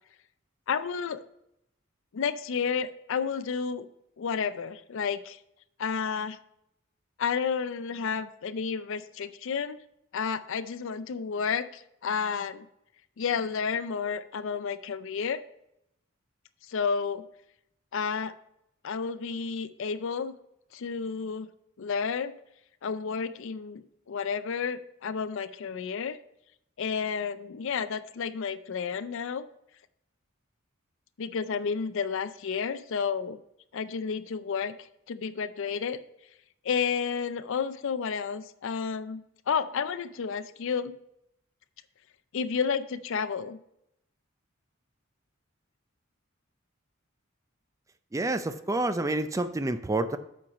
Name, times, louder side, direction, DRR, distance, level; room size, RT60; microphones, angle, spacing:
voice 1, 0.7-1.2 2.1-3.9 4.2-5.4 5.8-6.4 7.2-9.8 10.1-12.7 13.2-15.4 16.7-17.2 17.9-18.3 18.8-20.3 20.7-21.5 21.8-22.3 22.8-26.2 26.8-29.4 31.2-33.4 33.7-34.7 35.1-36.0 36.6-40.9 42.3-43.6, left 6 dB, 65° left, 13 dB, 0.4 m, -31 dB
voice 2, 48.1-50.2, right 2 dB, 15° right, 10 dB, 0.4 m, -28 dB
8.6 x 4.6 x 5.2 m, 0.80 s
head